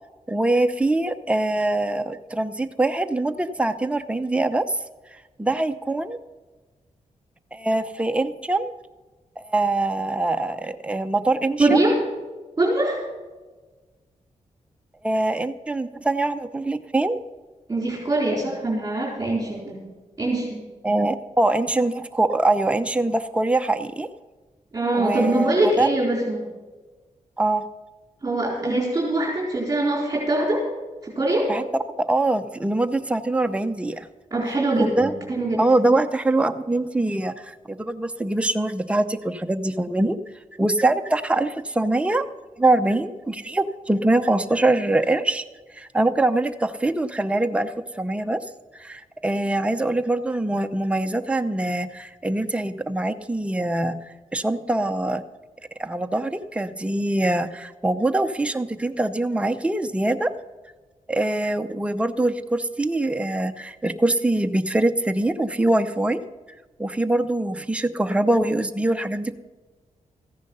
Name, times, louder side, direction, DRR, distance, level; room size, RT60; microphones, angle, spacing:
voice 1, 0.3-4.8 5.4-6.2 7.5-8.7 9.4-11.8 15.0-17.2 20.8-24.1 24.9-25.9 27.4-27.7 31.5-31.6 32.1-34.1 34.8-35.1 35.6-40.2 40.6-42.3 42.6-45.4 45.7-48.4 48.7-55.2 55.8-60.3 61.1-66.2 66.8-69.3, right 2 dB, 10° right, 7 dB, 0.7 m, -23 dB
voice 2, 11.6-12.0 12.6-13.0 17.7-19.8 20.2-20.6 24.7-26.4 28.2-30.6 31.0-31.5 34.3-35.6, right 2 dB, 25° right, -3 dB, 4.1 m, -23 dB
14.5 x 10.5 x 5.5 m, 1.2 s
cardioid pair, 75°, 13 cm